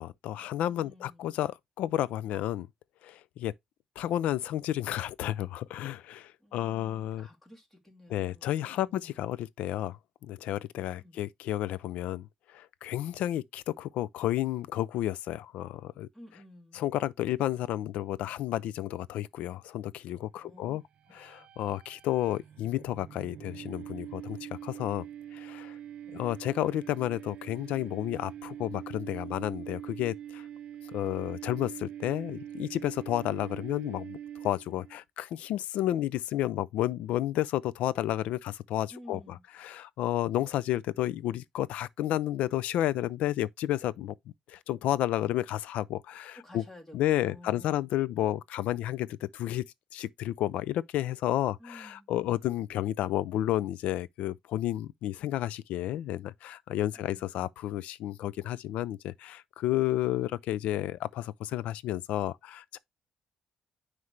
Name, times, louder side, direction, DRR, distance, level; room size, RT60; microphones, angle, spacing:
voice 1, 0.0-2.7 3.0-3.5 4.0-7.3 8.1-16.1 16.7-20.8 21.2-25.0 25.3-25.8 26.1-30.5 30.9-44.1 44.5-46.6 46.9-49.6 49.9-62.8, left 13 dB, 85° left, 0.4 m, -31 dB
voice 2, 0.6-1.4 6.4-9.1 11.0-11.2 16.1-16.8 20.4-20.8 21.4-21.5 26.0-26.2 38.9-39.4 46.3-47.9 51.6-52.1 56.9-57.3, equal, 15° left, 2.6 m, -52 dB
sound 1, 20.9-35.0, right 10 dB, 60° right, 0.5 m, -44 dB
9.5 x 3.3 x 3.2 m
cardioid pair, 115°, 2 cm